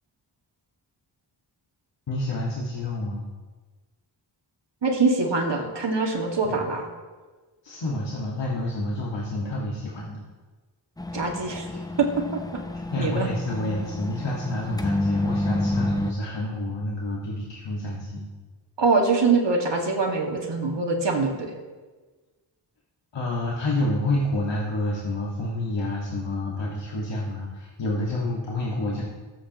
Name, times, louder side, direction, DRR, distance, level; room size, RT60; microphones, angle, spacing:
voice 1, 2.1-3.3 6.4-6.7 7.6-10.2 11.7-11.8 12.9-18.3 23.1-29.0, left 1 dB, 70° left, -4 dB, 1.8 m, -29 dB
voice 2, 4.8-6.9 11.1-11.7 12.0-12.4 13.0-13.3 18.8-21.5, right 4 dB, 70° right, 1 dB, 2.1 m, -23 dB
sound 1, 11.0-16.1, left 1 dB, 10° left, 0.6 m, -29 dB
20.0 x 8.3 x 3.0 m, 1.3 s
cardioid pair, 60°, 45 cm